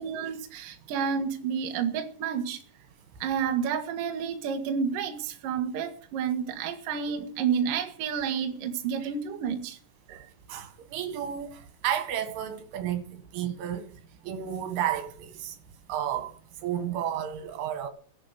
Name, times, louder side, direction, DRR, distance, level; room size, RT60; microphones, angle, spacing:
voice 1, 0.0-2.6 3.2-9.8 10.1-10.3, right 7 dB, 60° right, 2.6 m, -30 dB
voice 2, 10.5-13.9 14.2-15.6 15.9-16.3 16.6-17.9, right 10 dB, 80° right, 4.4 m, -32 dB
15.5 x 11.5 x 6.6 m
omnidirectional pair, 5.6 m